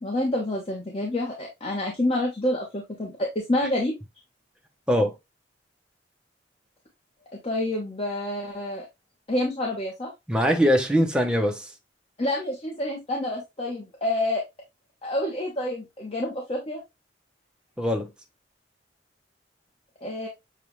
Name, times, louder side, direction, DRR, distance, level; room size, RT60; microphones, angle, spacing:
voice 1, 0.0-3.9 7.4-8.9 9.3-10.1 12.2-14.4 15.0-16.8 20.0-20.3, left 1 dB, 35° left, 1.1 m, -28 dB
voice 2, 10.3-11.7 17.8-18.1, equal, 5° right, 0.8 m, -22 dB
7.0 x 2.4 x 3.1 m
head